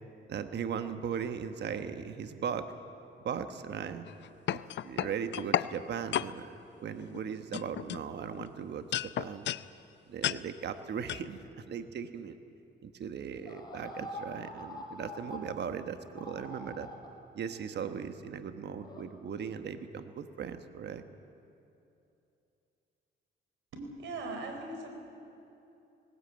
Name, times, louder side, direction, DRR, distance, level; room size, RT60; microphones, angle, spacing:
voice 1, 0.3-2.7 3.2-4.1 4.5-6.5 6.8-8.9 9.2-9.5 10.1-12.4 12.8-16.9 17.3-21.0, right 7 dB, 60° right, 8 dB, 1.3 m, -38 dB
sound 1, 4.1-5.7 6.1-6.3 7.0-7.2 7.5-8.5 8.9-9.7 10.2-10.4 11.1-11.2, left 12 dB, 65° left, 0.6 m, -32 dB
sound 2, 13.5-15.4 16.2-17.1 18.8-19.0, left 1 dB, 20° left, 5.7 m, -44 dB
voice 2, 23.7-24.9, right 2 dB, 75° right, 4 dB, 4.4 m, -39 dB
19.5 x 18.5 x 8.7 m, 2.8 s
cardioid pair, 90°, 20 cm